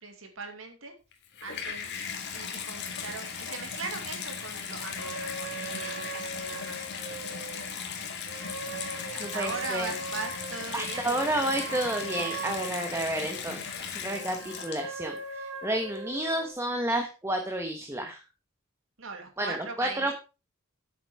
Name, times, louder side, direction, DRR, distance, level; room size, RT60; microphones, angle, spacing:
voice 1, 0.0-0.9 1.4-1.9 2.3-7.5 9.0-11.8 19.0-20.1, right 4 dB, 70° right, 5 dB, 2.6 m, -40 dB
Water tap faucet / Bathtub (filling or washing), 1.1-15.2 15.9-16.0, left 6 dB, 55° left, 2.0 m, -37 dB
sound 1, 5.0-7.7 8.3-13.4 14.0-16.5, right 3 dB, 90° right, 2.4 m, -40 dB
voice 2, 9.2-9.9 10.7-18.2 19.4-20.1, right 1 dB, 15° right, 4 dB, 1.3 m, -31 dB
8.7 x 8.4 x 4.9 m, 0.31 s
head